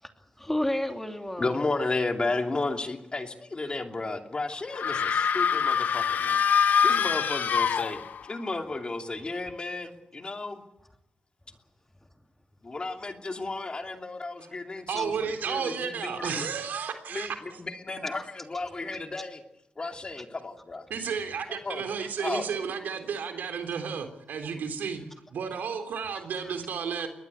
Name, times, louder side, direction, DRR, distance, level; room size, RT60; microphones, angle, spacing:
voice 1, 0.0-1.7 5.0-5.1 6.5-6.7 15.0-15.1 16.2-16.3 18.1-18.2 26.4-26.5, left 1 dB, 10° left, 3.0 m, -32 dB
voice 2, 1.4-6.4 6.8-8.0 8.3-10.6 12.6-16.5 17.1-17.3 17.6-19.4 19.8-20.8 21.6-21.8 22.2-22.5, left 3 dB, 30° left, 2.8 m, -33 dB
sound 1, 4.7-8.4, left 7 dB, 70° left, 0.9 m, -25 dB
voice 3, 14.9-17.6 20.9-25.0 25.3-27.1, right 6 dB, 80° right, 3.6 m, -32 dB
23.0 x 20.0 x 8.3 m
cardioid pair, 80°, 3 cm